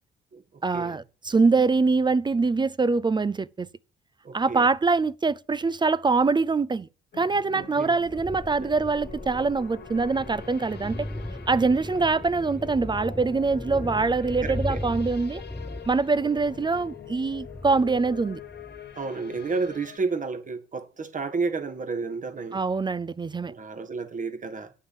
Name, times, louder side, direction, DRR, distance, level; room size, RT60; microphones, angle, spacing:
voice 1, 0.6-3.7 4.3-6.9 7.2-11.1 11.5-15.4 15.9-18.4 22.5-23.5, right 4 dB, 20° right, 0.5 m, -24 dB
voice 2, 4.2-4.7 7.5-8.0 8.6-8.7 14.4-14.8 18.9-22.6 23.5-24.7, right 4 dB, 40° right, 1.6 m, -31 dB
sound 1, 7.1-20.0, left 8 dB, 60° left, 1.8 m, -45 dB
sound 2, 7.6-19.0 19.4-19.5, left 1 dB, 10° left, 0.9 m, -38 dB
9.5 x 6.5 x 7.3 m
cardioid pair, 90°, 20 cm